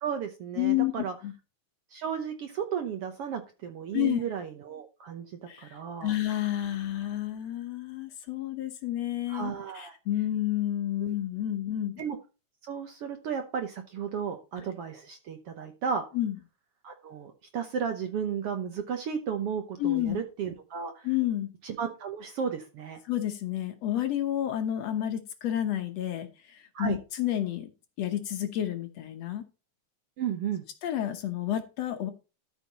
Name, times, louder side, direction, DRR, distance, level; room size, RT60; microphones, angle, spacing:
voice 1, 0.0-1.1 1.9-5.3 5.6-6.2 9.3-10.0 11.0-11.1 12.0-12.2 12.6-16.0 16.8-21.1 21.6-23.0 26.7-27.0 30.2-30.6, right 7 dB, 65° right, 6 dB, 1.6 m, -34 dB
voice 2, 0.6-0.9 1.2-1.3 3.9-4.2 5.5-11.9 16.1-16.4 19.8-20.2 21.0-21.5 23.1-27.7 28.0-29.4 30.8-32.1, left 12 dB, 65° left, 7 dB, 1.9 m, -30 dB
13.0 x 5.6 x 4.1 m, 0.31 s
omnidirectional pair, 3.6 m